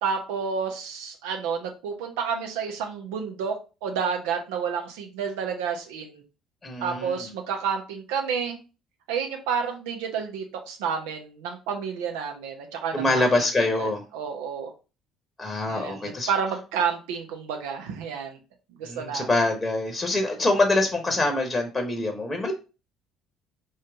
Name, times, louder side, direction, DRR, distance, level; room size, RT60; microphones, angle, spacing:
voice 1, 0.0-6.2 6.8-8.6 9.1-13.4 13.8-14.7 15.7-18.4 18.8-19.3, right 6 dB, 70° right, 3 dB, 0.9 m, -30 dB
voice 2, 6.6-7.3 12.9-14.0 15.4-16.3 18.9-22.5, left 2 dB, 20° left, 4 dB, 1.0 m, -25 dB
4.6 x 3.2 x 3.5 m, 0.32 s
figure-of-eight pair, 50°, 0 cm